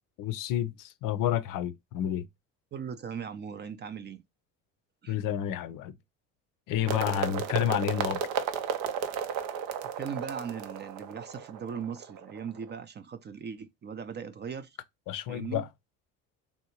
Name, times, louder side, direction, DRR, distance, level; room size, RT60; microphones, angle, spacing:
voice 1, 0.2-2.3 5.1-5.9 6.7-8.2 15.1-15.7, left 11 dB, 55° left, 0.5 m, -30 dB
voice 2, 2.7-4.2 5.0-5.2 6.9-7.6 9.9-14.8 15.3-15.7, right 7 dB, 30° right, 0.4 m, -39 dB
sound 1, 6.9-12.8, right 7 dB, 75° right, 0.7 m, -34 dB
3.3 x 2.6 x 2.9 m
hypercardioid pair, 70°, 38 cm